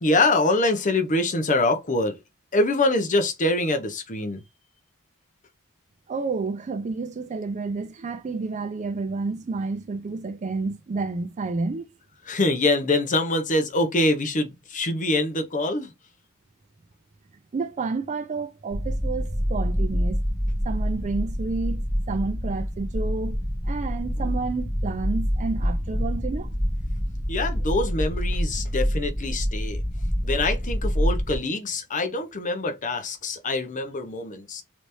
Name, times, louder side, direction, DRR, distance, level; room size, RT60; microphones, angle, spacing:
voice 1, 0.0-2.1 2.5-4.4 12.3-15.9 27.3-29.8 30.2-34.6, left 2 dB, 35° left, 0.7 m, -24 dB
voice 2, 6.1-11.9 17.5-20.2 20.6-26.6, right 3 dB, 35° right, 0.4 m, -30 dB
sound 1, 18.7-31.4, equal, ahead, 0.8 m, -26 dB
3.3 x 3.0 x 2.6 m
head